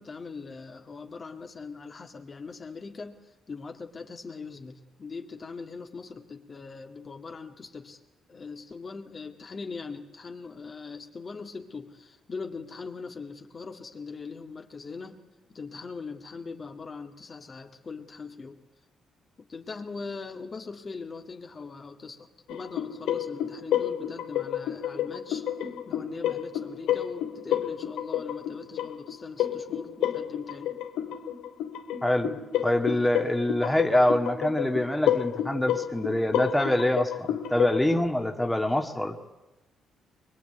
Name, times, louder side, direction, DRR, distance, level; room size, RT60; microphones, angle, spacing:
voice 1, 0.0-8.0 8.3-15.2 15.5-18.6 19.4-25.5 25.9-30.8, left 4 dB, 35° left, 4 dB, 2.1 m, -41 dB
sound 1, 22.5-38.0, left 11 dB, 90° left, 2.2 m, -30 dB
voice 2, 32.0-39.2, left 1 dB, 5° left, 3 dB, 2.0 m, -25 dB
22.5 x 22.5 x 9.2 m, 1.0 s
cardioid pair, 90°, 0 cm